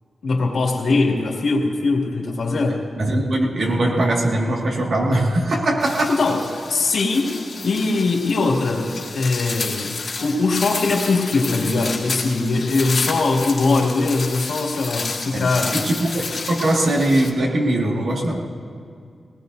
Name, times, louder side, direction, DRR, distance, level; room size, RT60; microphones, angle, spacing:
voice 1, 0.2-2.8 6.1-15.8, left 3 dB, 75° left, -2 dB, 2.4 m, -21 dB
voice 2, 3.0-6.1 15.3-18.5, right 1 dB, 65° right, -1 dB, 2.0 m, -21 dB
sound 1, 5.8-17.3, left 4 dB, 55° left, 1.9 m, -31 dB
20.0 x 19.0 x 2.7 m, 2.3 s
wide cardioid pair, 100°, 0 cm